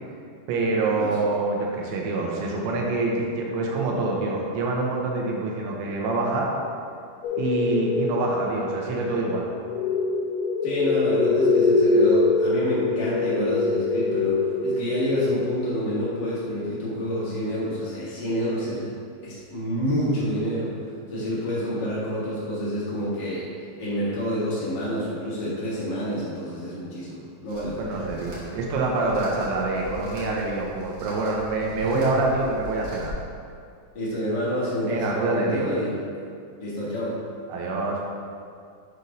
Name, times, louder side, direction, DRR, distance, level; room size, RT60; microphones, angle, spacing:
voice 1, 0.5-6.5 7.4-9.4 27.8-33.1 34.9-35.7 37.5-38.0, right 3 dB, 90° right, -2 dB, 3.1 m, -26 dB
sound 1, 7.2-16.0, left 3 dB, 75° left, 2.0 m, -24 dB
voice 2, 10.6-18.9 19.2-20.7 21.1-23.4 23.8-28.0 31.8-32.2 33.9-36.0 36.6-37.2, equal, 90° left, -9 dB, 0.9 m, -28 dB
sound 2, 27.5-33.1, equal, 55° right, 1.2 m, -41 dB
8.0 x 4.2 x 5.3 m, 2.3 s
omnidirectional pair, 5.1 m